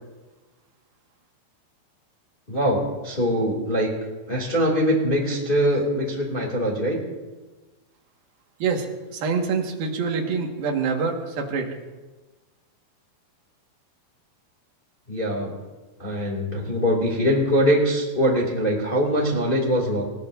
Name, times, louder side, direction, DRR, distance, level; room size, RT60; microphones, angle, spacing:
voice 1, 2.5-3.9 4.3-7.0 15.1-15.5 16.0-20.0, equal, 15° left, -2 dB, 1.8 m, -22 dB
voice 2, 9.1-11.7, right 5 dB, 60° right, 1 dB, 3.2 m, -25 dB
28.5 x 16.5 x 2.7 m, 1.2 s
omnidirectional pair, 5.6 m